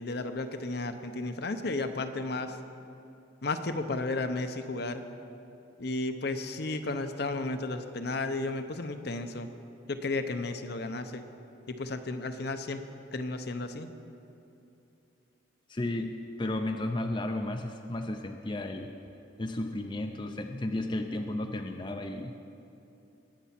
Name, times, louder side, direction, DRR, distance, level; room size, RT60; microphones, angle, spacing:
voice 1, 0.0-2.6 3.4-5.0 5.8-9.5 9.9-11.2 11.7-12.8 13.1-13.9, left 2 dB, 55° left, 7 dB, 0.8 m, -33 dB
voice 2, 15.7-18.9 19.4-22.4, left 1 dB, 25° left, 5 dB, 0.5 m, -33 dB
20.5 x 8.2 x 5.8 m, 2.8 s
head